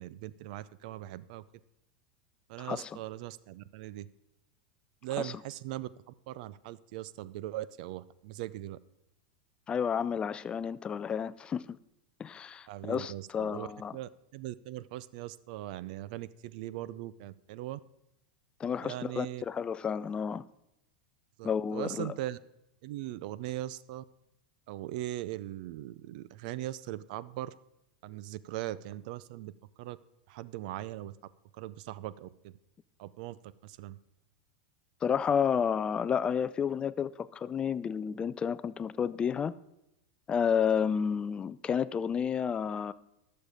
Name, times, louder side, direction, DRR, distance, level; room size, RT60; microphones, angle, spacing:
voice 1, 0.0-1.4 2.5-4.1 5.0-8.8 12.7-17.8 18.8-19.4 21.4-22.4 22.8-24.0 24.7-27.5 28.0-30.0 30.3-31.1 31.5-32.6 33.0-34.0, right 15 dB, 65° right, 0.5 m, -40 dB
voice 2, 2.6-2.9 5.2-5.3 9.7-11.8 12.2-13.9 18.6-20.4 21.4-22.1 35.0-39.5 40.3-42.9, left 7 dB, 20° left, 0.3 m, -31 dB
12.5 x 6.6 x 5.0 m
supercardioid pair, 130°, 5 cm